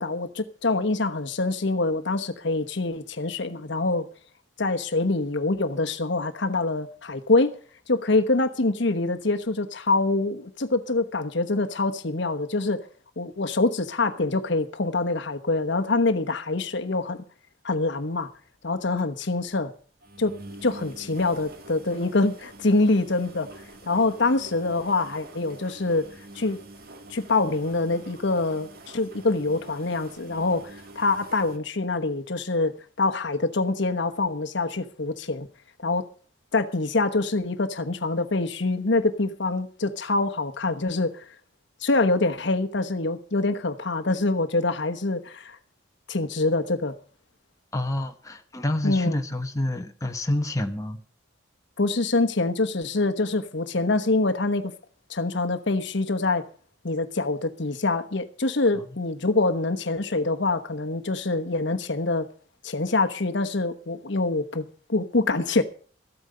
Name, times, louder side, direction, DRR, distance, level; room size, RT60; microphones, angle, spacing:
voice 1, 0.0-4.1 4.6-7.6 7.9-12.8 13.2-17.2 17.6-18.3 18.6-19.7 20.2-20.3 20.6-23.5 23.9-26.0 26.3-26.6 27.1-35.5 35.8-36.1 36.5-41.3 41.8-45.6 46.1-46.9 48.8-49.2 51.8-54.7 55.1-56.4 56.8-62.3 62.6-65.6, left 3 dB, 60° left, 1.1 m, -25 dB
sound 1, 18.2-18.4 18.6-18.7 19.0-19.1 19.4-19.5 20.0-31.6, right 2 dB, 50° right, 1.8 m, -46 dB
voice 2, 47.7-51.0, left 1 dB, 15° left, 1.1 m, -28 dB
14.0 x 8.9 x 6.7 m
head